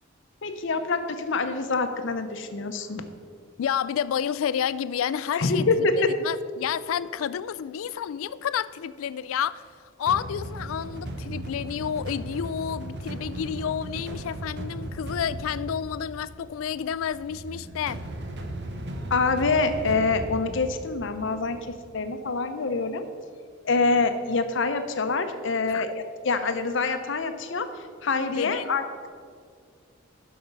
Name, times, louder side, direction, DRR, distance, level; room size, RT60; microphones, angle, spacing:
voice 1, 0.4-3.0 5.3-6.1 19.1-23.1 23.6-28.8, left 3 dB, 65° left, 8 dB, 0.7 m, -26 dB
voice 2, 3.6-5.6 6.2-9.6 10.0-18.0 25.7-25.9 28.3-28.7, left 8 dB, 90° left, 17 dB, 0.3 m, -30 dB
sound 1, 10.1-22.0, right 1 dB, 60° right, 0.9 m, -37 dB
11.0 x 5.9 x 5.2 m, 2.1 s
head